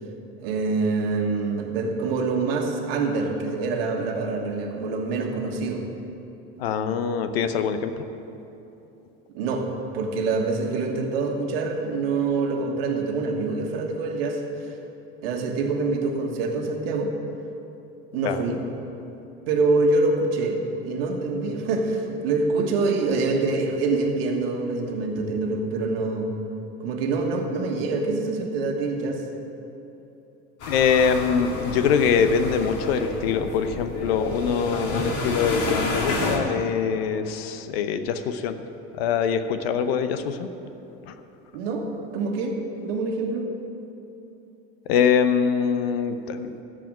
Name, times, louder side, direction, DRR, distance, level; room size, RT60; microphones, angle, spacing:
voice 1, 0.4-5.8 9.3-9.7 9.9-14.4 14.7-14.8 15.2-17.1 18.1-18.6 19.5-26.3 26.8-29.2 41.5-43.5, right 3 dB, 80° right, 2 dB, 1.5 m, -25 dB
voice 2, 6.6-8.0 18.2-18.5 30.7-38.5 38.9-40.5 41.1-41.2 44.9-46.6, left 6 dB, 80° left, 10 dB, 0.8 m, -23 dB
sound 1, 30.6-36.4, left 2 dB, 55° left, 2.2 m, -29 dB
14.0 x 4.9 x 9.1 m, 2.9 s
hypercardioid pair, 90°, 29 cm